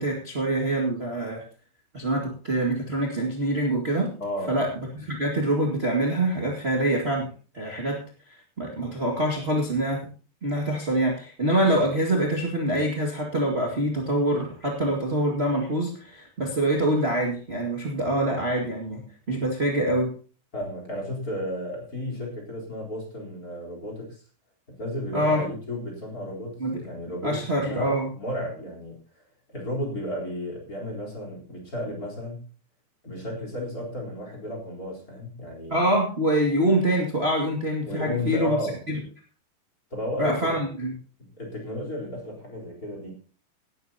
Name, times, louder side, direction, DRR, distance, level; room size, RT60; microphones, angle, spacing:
voice 1, 0.0-1.4 1.9-4.1 4.5-4.7 4.9-7.3 7.5-8.0 8.6-10.1 10.4-19.0 19.3-20.1 25.1-25.4 26.6-26.8 27.2-28.1 35.7-38.6 38.9-39.0 40.2-40.9, right 1 dB, 30° right, -1 dB, 1.1 m, -25 dB
voice 2, 4.2-4.6 20.5-24.2 24.7-29.0 29.5-32.5 33.0-35.8 37.8-38.8 39.9-40.6 41.2-43.1, equal, 20° left, 0 dB, 3.9 m, -33 dB
18.0 x 11.0 x 2.8 m, 0.38 s
omnidirectional pair, 4.8 m